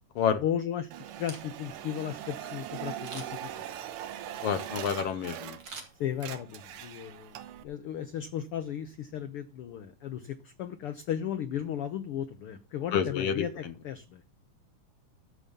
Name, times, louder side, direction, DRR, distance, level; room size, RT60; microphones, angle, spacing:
voice 1, 0.4-0.9 1.2-3.6 6.0-7.3 7.6-14.2, left 10 dB, 90° left, 10 dB, 1.2 m, -35 dB
sound 1, 0.9-5.9 6.1-7.6, right 11 dB, 85° right, 2.5 m, -41 dB
Camera, 1.3-1.8 3.0-3.5 5.6-6.5 6.9-7.0, right 4 dB, 40° right, 2.4 m, -46 dB
voice 2, 4.4-5.6 12.9-13.4, left 7 dB, 65° left, 10 dB, 1.6 m, -28 dB
14.0 x 5.3 x 7.1 m, 0.33 s
omnidirectional pair, 3.7 m